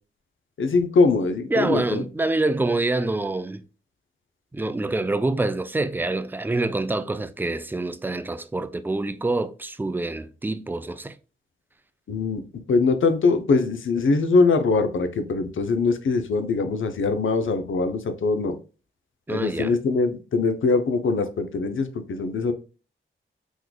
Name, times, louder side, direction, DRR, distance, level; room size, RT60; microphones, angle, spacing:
voice 1, 0.6-2.0 12.1-18.6 19.3-22.5, left 4 dB, 70° left, 0.6 m, -22 dB
voice 2, 1.5-3.6 4.5-11.1 19.3-19.7, right 2 dB, 10° right, 0.3 m, -26 dB
3.7 x 3.1 x 2.3 m
cardioid pair, 60°, 21 cm